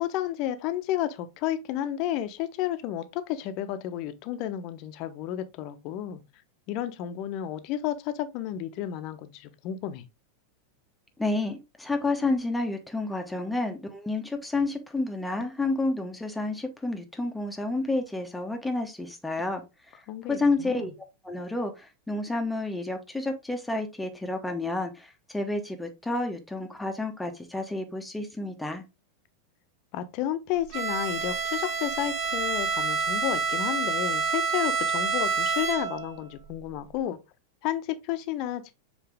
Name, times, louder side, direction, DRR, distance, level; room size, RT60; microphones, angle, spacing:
voice 1, 0.0-6.2 6.7-10.0 20.1-20.9 29.9-37.2 37.6-38.7, left 12 dB, 40° left, 1.0 m, -32 dB
voice 2, 11.2-19.6 20.3-20.9 21.2-28.8, left 2 dB, 5° left, 1.2 m, -30 dB
Bowed string instrument, 30.7-36.1, right 4 dB, 40° right, 1.6 m, -28 dB
7.7 x 4.5 x 3.5 m
figure-of-eight pair, 90°, 0 cm